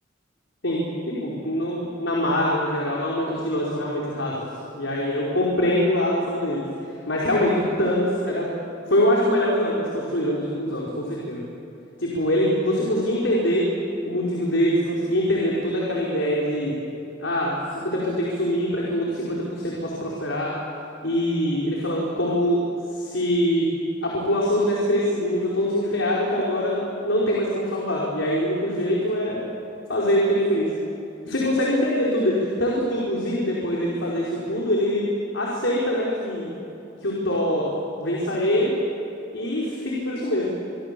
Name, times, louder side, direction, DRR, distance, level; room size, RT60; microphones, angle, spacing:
voice 1, 0.6-4.3 4.7-6.6 7.1-8.5 8.9-11.4 12.0-13.7 14.0-16.7 17.2-17.5 17.8-20.5 21.0-22.6 22.9-23.7 24.0-29.4 29.9-30.7 31.2-35.1 35.3-36.5 37.0-37.7 38.0-38.8 39.3-40.5, equal, 85° left, -4 dB, 4.8 m, -23 dB
26.0 x 24.5 x 7.0 m, 2.7 s
head